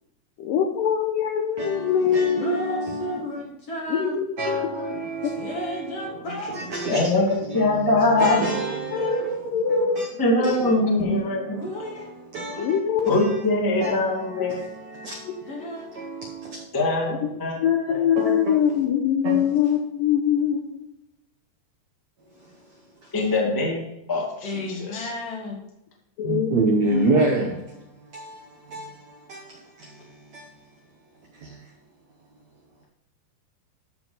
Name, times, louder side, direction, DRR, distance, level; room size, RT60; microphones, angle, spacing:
voice 1, 0.4-2.5 3.9-4.6 6.9-7.0 8.3-8.4 8.9-10.0 10.5-10.7 12.6-13.1 13.8-13.9 15.3-15.4 17.1-17.2 17.6-20.9 26.2-26.5 26.9-27.1, left 8 dB, 80° left, 2.1 m, -23 dB
voice 2, 1.6-3.2 4.4-6.1 6.5-7.1 7.5-7.8 8.2-10.1 10.4-12.8 13.1-13.3 13.8-16.6 18.2-18.8 19.2-19.5 26.2-27.7 28.1-30.5 31.3-31.6, right 2 dB, 90° right, 1.5 m, -29 dB
voice 3, 2.4-4.2 5.4-6.6 8.4-9.1 11.6-12.1 15.5-15.9 24.4-25.6, left 1 dB, 55° left, 1.8 m, -33 dB
voice 4, 6.9-8.5 10.2-11.6 13.0-14.6 16.7-17.6 17.9-18.0 23.1-23.8 24.1-25.1, left 2 dB, 20° left, 0.6 m, -22 dB
13.5 x 4.6 x 4.0 m
omnidirectional pair, 4.8 m